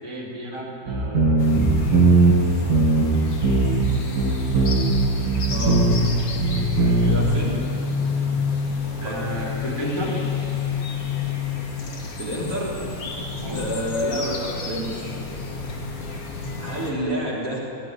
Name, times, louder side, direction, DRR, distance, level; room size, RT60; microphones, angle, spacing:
voice 1, 0.0-1.4 6.7-7.2 9.0-10.2 13.4-13.6, right 1 dB, 5° left, -3 dB, 3.4 m, -32 dB
sound 1, 0.9-2.4 2.7-3.1 3.4-3.9 4.2-6.1 6.4-7.2, right 3 dB, 60° right, 6.3 m, -18 dB
sound 2, 1.4-16.9, left 4 dB, 40° left, 2.9 m, -30 dB
voice 2, 1.7-2.7 3.7-4.5 5.5-6.0 7.1-7.6 8.1-8.2 9.0-9.4 12.2-12.9 13.5-15.1 16.6-17.6, equal, 35° right, -4 dB, 4.3 m, -30 dB
18.5 x 16.0 x 9.9 m, 2.6 s
omnidirectional pair, 4.6 m